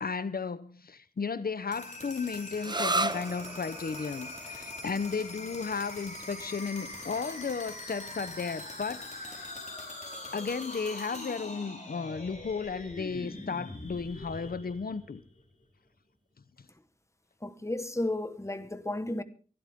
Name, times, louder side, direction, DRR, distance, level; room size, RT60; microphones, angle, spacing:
voice 1, 0.0-9.5 10.2-15.2, left 5 dB, 90° left, 0.8 m, -34 dB
sound 1, 1.6-15.4, left 2 dB, 50° left, 4.5 m, -43 dB
sound 2, 2.6-10.0, right 2 dB, 30° right, 0.7 m, -37 dB
voice 2, 17.4-19.2, left 1 dB, 20° left, 1.4 m, -33 dB
23.5 x 12.5 x 3.6 m
wide cardioid pair, 65°, 15 cm